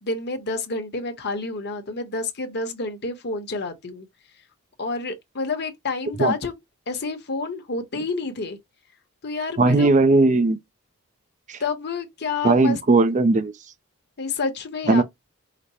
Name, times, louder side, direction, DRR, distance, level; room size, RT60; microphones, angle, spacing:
voice 1, 0.0-4.1 4.8-6.6 6.9-8.6 9.2-9.9 11.6-12.8 14.2-15.0, left 3 dB, 50° left, 1.0 m, -29 dB
voice 2, 9.6-10.6 12.4-13.5 14.9-15.0, right 3 dB, 35° right, 0.5 m, -17 dB
5.0 x 2.1 x 4.2 m
head